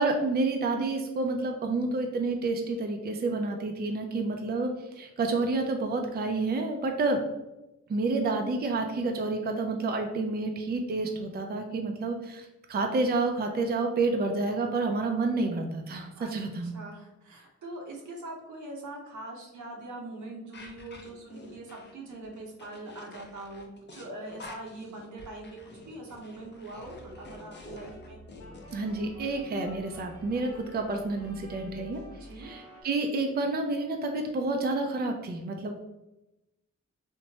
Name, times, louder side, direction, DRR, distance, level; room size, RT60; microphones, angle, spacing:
voice 1, 0.0-7.2 7.9-16.7 28.7-32.0 32.4-35.8, right 3 dB, 35° right, 4 dB, 0.4 m, -29 dB
voice 2, 16.6-28.2 32.1-32.5, right 2 dB, 80° right, 0 dB, 0.8 m, -42 dB
sound 1, 20.5-28.8, left 2 dB, 40° left, 0.6 m, -49 dB
sound 2, 26.7-32.8, equal, 85° left, 0.7 m, -48 dB
2.9 x 2.2 x 2.7 m, 0.95 s
cardioid pair, 60°, 29 cm